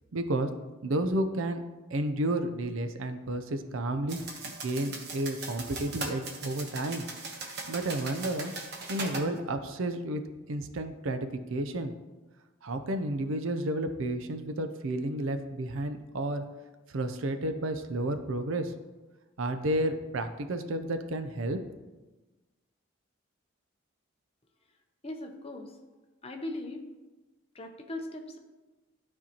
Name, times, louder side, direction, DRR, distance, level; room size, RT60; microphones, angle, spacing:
voice 1, 0.1-0.5 0.8-1.6 1.9-7.0 7.7-8.5 8.9-10.2 10.5-11.9 12.6-16.4 16.9-18.7 19.4-21.6, right 1 dB, 75° right, 8 dB, 0.6 m, -31 dB
sound 1, 4.1-9.3, right 3 dB, 50° right, 1.0 m, -39 dB
voice 2, 25.0-25.8 26.2-26.9 27.5-28.4, left 1 dB, 30° left, 4 dB, 0.7 m, -39 dB
12.0 x 4.4 x 2.9 m, 1.2 s
head